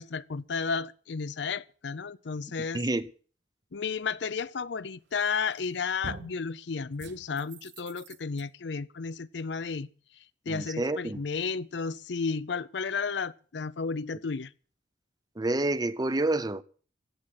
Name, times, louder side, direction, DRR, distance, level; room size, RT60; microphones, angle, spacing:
voice 1, 0.0-2.8 3.7-9.9 10.5-14.5, left 5 dB, 70° left, 0.6 m, -33 dB
voice 2, 2.7-3.1 10.5-11.2 15.4-16.6, right 2 dB, 20° right, 0.6 m, -28 dB
sound 1, 5.2-5.6 6.0-6.4 7.0-8.4, right 3 dB, 75° right, 1.4 m, -44 dB
15.5 x 8.7 x 7.7 m
head